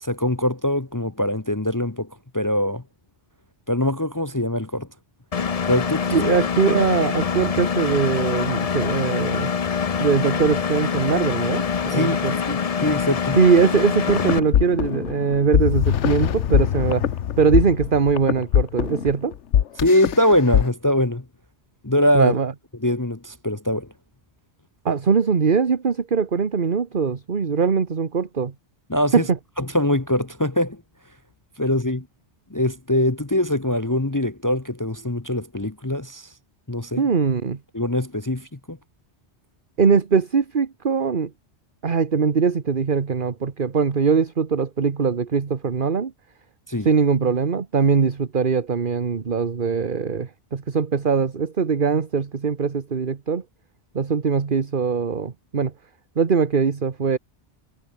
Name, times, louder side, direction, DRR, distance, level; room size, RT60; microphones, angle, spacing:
voice 1, 0.0-2.1 2.3-2.8 3.7-4.9 5.7-6.5 11.9-13.4 19.8-21.2 21.8-22.4 22.8-23.9 28.9-29.2 29.6-30.8 31.6-32.1 32.5-36.3 36.7-37.1 37.7-38.8 46.7-46.9, left 1 dB, 15° left, 1.0 m, -23 dB
Engine, 5.3-14.4, left 6 dB, 40° left, 0.7 m, -24 dB
voice 2, 6.1-9.5 10.0-12.3 13.4-17.1 17.4-19.3 22.1-22.5 24.8-28.5 29.1-29.4 37.0-37.6 39.8-41.3 41.8-46.1 46.8-53.4 53.9-55.7 56.2-57.2, right 5 dB, 50° right, 1.4 m, -21 dB
sound 1, 14.1-20.6, left 10 dB, 85° left, 1.1 m, -22 dB
omnidirectional pair, 1.2 m